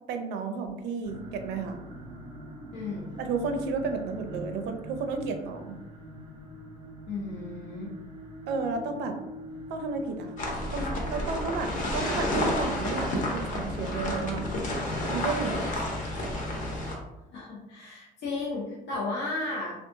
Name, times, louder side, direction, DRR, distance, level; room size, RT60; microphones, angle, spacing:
voice 1, 0.1-1.8 3.2-5.8 8.5-9.2 9.7-10.3 10.7-14.4 15.1-15.8, right 4 dB, 85° right, 6 dB, 0.4 m, -32 dB
sound 1, 1.0-16.9, equal, 30° right, 0.5 m, -44 dB
voice 2, 2.7-3.1 7.1-7.9 17.3-19.7, left 3 dB, 80° left, -7 dB, 0.8 m, -34 dB
sound 2, 10.4-17.0, left 1 dB, 50° left, 0.7 m, -30 dB
2.7 x 2.3 x 2.6 m, 0.98 s
cardioid pair, 110°, 17 cm